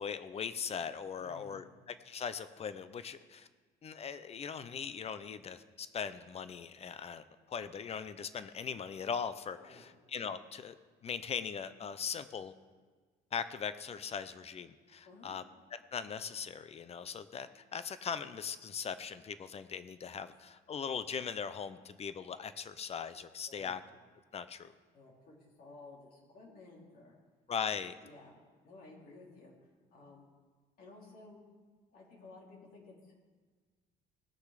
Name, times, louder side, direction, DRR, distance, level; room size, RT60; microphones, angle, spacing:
voice 1, 0.0-3.5 3.8-10.7 11.0-12.5 13.3-15.4 15.7-23.8 24.3-24.7 27.5-28.0, left 7 dB, 40° left, 13 dB, 0.7 m, -40 dB
voice 2, 1.2-1.6 9.6-9.9 15.0-15.3 23.5-23.8 24.9-27.2 28.0-29.5 29.9-30.3 30.8-31.4 31.9-33.1, left 3 dB, 60° left, -3 dB, 3.2 m, -55 dB
18.5 x 6.5 x 5.0 m, 1.4 s
cardioid pair, 110°, 17 cm